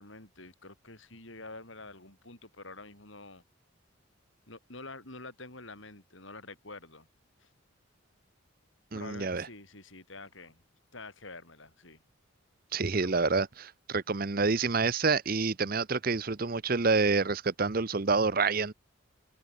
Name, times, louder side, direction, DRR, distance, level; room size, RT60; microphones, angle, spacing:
voice 1, 0.0-3.4 4.5-7.1 7.4-7.5 8.9-10.6 10.9-12.0 13.0-13.2, left 2 dB, 65° left, 7.5 m, -47 dB
voice 2, 8.9-9.5 12.7-18.7, right 4 dB, 45° right, 0.8 m, -28 dB
head